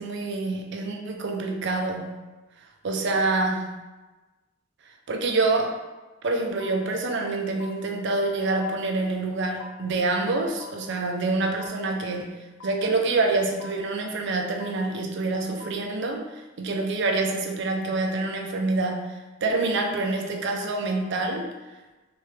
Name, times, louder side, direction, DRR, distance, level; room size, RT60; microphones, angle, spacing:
voice 1, 0.0-2.2 2.8-3.8 5.1-5.8 6.2-21.5, right 3 dB, 60° right, 3 dB, 0.5 m, -26 dB
sound 1, 6.6-6.7 7.6-7.7 8.6-8.7 9.6-9.7 10.6-10.7 11.6-11.7 12.6-12.7 13.6-13.7 14.6-14.7 15.6-15.7, left 5 dB, 80° left, 0.3 m, -42 dB
3.4 x 3.3 x 3.2 m, 1.2 s
head